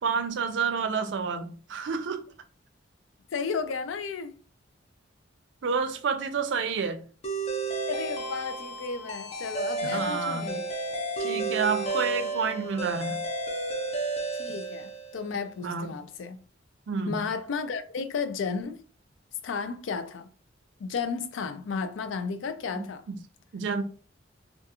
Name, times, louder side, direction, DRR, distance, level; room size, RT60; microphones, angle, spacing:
voice 1, 0.0-2.2 5.6-7.0 9.8-10.6 11.2-13.2 15.6-15.9 16.9-17.2 22.7-23.2 23.5-23.8, right 5 dB, 70° right, 0.4 m, -29 dB
voice 2, 3.3-4.3 7.9-10.6 11.2-11.3 14.3-16.4 17.1-18.8 19.4-20.3 20.8-23.0, left 5 dB, 90° left, 0.4 m, -33 dB
sound 1, 7.2-15.4, right 3 dB, 35° left, 0.5 m, -32 dB
2.4 x 2.3 x 2.8 m
head